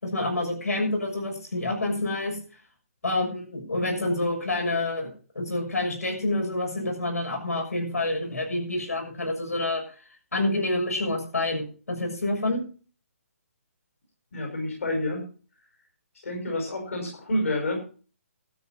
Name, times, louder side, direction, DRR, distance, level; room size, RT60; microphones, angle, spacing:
voice 1, 0.0-2.4 3.0-5.1 5.3-9.8 10.3-12.6, left 2 dB, 90° left, 3 dB, 6.7 m, -28 dB
voice 2, 14.3-15.3 16.2-17.8, left 1 dB, 65° left, 1 dB, 5.2 m, -28 dB
13.0 x 9.2 x 5.7 m, 0.39 s
figure-of-eight pair, 145°, 8 cm